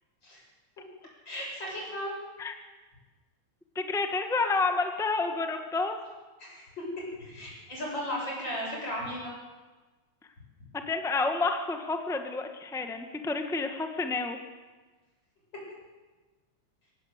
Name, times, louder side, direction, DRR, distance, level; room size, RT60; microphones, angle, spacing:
voice 1, 1.3-2.2 6.4-6.6 7.2-9.3, equal, 35° left, -3 dB, 8.3 m, -35 dB
voice 2, 3.7-6.0 10.9-14.4, left 3 dB, 5° left, 5 dB, 0.3 m, -29 dB
25.5 x 17.0 x 8.1 m, 1.3 s
omnidirectional pair, 3.3 m